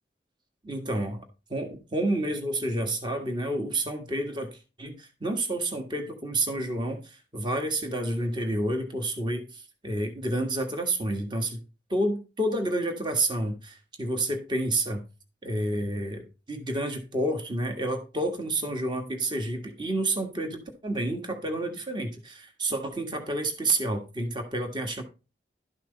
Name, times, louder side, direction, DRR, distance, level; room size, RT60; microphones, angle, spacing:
voice 1, 0.6-1.2 1.5-11.6 11.9-15.0 15.4-25.0, right 1 dB, 25° right, 4 dB, 1.6 m, -29 dB
12.5 x 6.0 x 4.0 m, 0.30 s
head